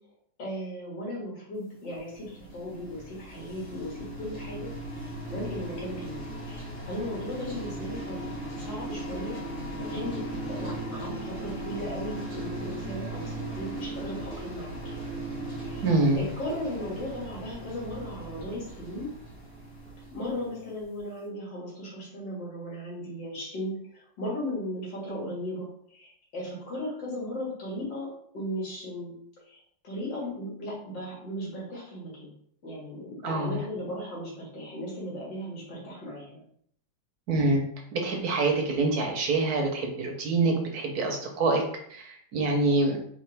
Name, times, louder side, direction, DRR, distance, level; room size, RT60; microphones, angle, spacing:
voice 1, 0.4-3.9 4.2-4.7 5.3-8.3 8.6-9.4 9.8-10.2 10.5-14.8 15.6-15.8 16.2-19.1 20.1-29.1 29.5-32.3 32.6-36.4, left 1 dB, 80° left, -5 dB, 2.8 m, -36 dB
sound 1, 1.9-20.9, right 1 dB, 35° left, 1.6 m, -38 dB
voice 2, 15.8-16.2 33.2-33.6 37.3-37.6 37.9-41.6 41.9-43.0, right 2 dB, 65° right, 2 dB, 1.2 m, -25 dB
4.7 x 3.4 x 3.3 m, 0.65 s
omnidirectional pair, 1.9 m